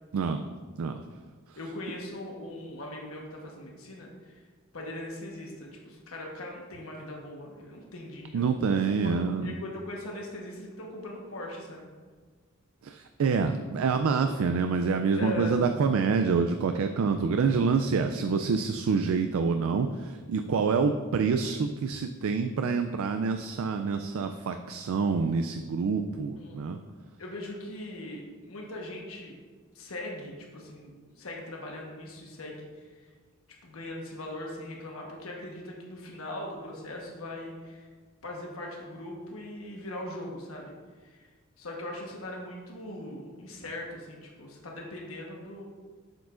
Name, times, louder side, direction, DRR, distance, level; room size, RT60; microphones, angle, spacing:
voice 1, 1.6-4.4 4.7-8.5 9.0-11.9 15.1-15.6 26.4-26.6 27.2-29.4 29.7-33.0 33.6-37.9 38.2-40.7 41.0-41.3 41.6-45.6, left 1 dB, 80° left, -1 dB, 1.2 m, -40 dB
voice 2, 8.3-9.5 12.8-26.8, right 5 dB, 75° right, 7 dB, 0.3 m, -27 dB
7.6 x 7.1 x 2.5 m, 1.5 s
head